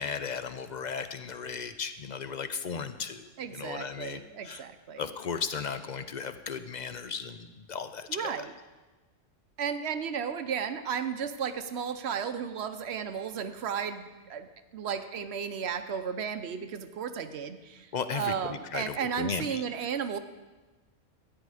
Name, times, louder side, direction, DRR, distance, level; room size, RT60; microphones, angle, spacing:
voice 1, 0.0-4.6 5.0-8.5 17.9-19.6, left 6 dB, 55° left, 11 dB, 0.5 m, -36 dB
voice 2, 3.4-5.1 8.1-8.5 9.6-14.5 14.7-20.2, right 7 dB, 60° right, 10 dB, 0.9 m, -34 dB
14.0 x 9.6 x 4.8 m, 1.2 s
omnidirectional pair, 1.3 m